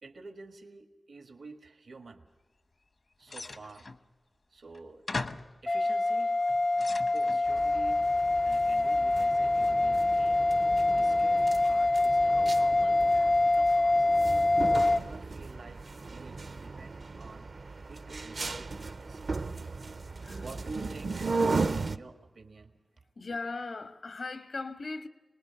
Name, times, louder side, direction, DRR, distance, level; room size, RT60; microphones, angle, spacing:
voice 1, 0.0-2.3 3.2-3.9 4.5-5.0 5.6-6.4 6.9-8.0 8.4-10.5 10.9-14.1 14.6-17.5 17.9-19.3 20.4-23.4, right 3 dB, 85° right, 1.6 m, -49 dB
sound 1, 3.3-4.0 4.7-4.8 5.1-5.6 6.3-7.4, left 3 dB, 65° left, 1.0 m, -38 dB
sound 2, 5.7-15.0, left 2 dB, 45° left, 0.6 m, -25 dB
sound 3, 7.5-22.0, right 3 dB, 70° right, 0.7 m, -36 dB
voice 2, 23.1-25.1, left 3 dB, 80° left, 1.5 m, -38 dB
25.5 x 20.0 x 7.0 m
wide cardioid pair, 70°, 0 cm